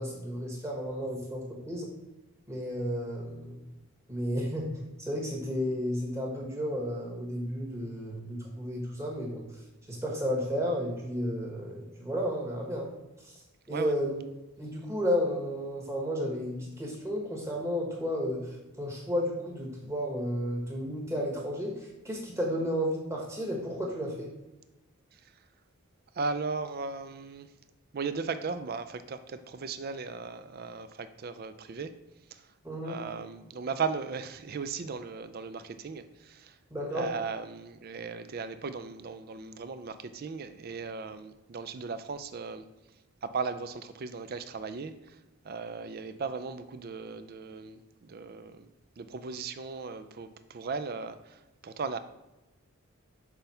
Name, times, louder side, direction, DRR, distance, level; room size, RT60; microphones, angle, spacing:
voice 1, 0.0-1.9 2.5-3.6 4.1-4.7 5.0-9.4 9.9-12.9 13.2-13.4 13.7-14.2 14.6-24.3 32.6-33.0 36.7-37.1, equal, 15° right, -1 dB, 1.2 m, -32 dB
voice 2, 26.1-27.5 27.9-31.9 32.3-32.5 32.8-36.6 36.9-42.6 43.2-45.2 45.4-48.7 49.0-52.0, right 4 dB, 45° right, 11 dB, 0.4 m, -37 dB
5.9 x 3.4 x 5.5 m, 1.0 s
head